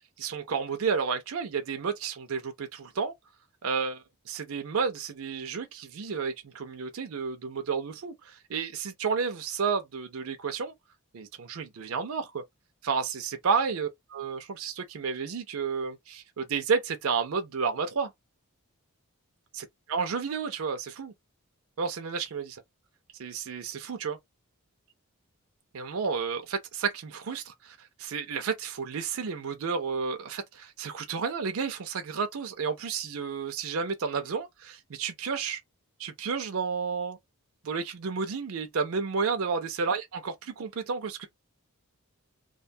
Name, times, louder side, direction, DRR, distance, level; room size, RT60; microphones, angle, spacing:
voice 1, 0.2-3.1 3.6-10.7 11.1-12.4 12.8-18.1 19.5-21.1 21.8-22.6 23.2-24.2 25.7-35.6 36.0-37.2 37.6-41.3, right 5 dB, 70° right, 0.5 m, -31 dB
2.5 x 2.2 x 2.6 m
head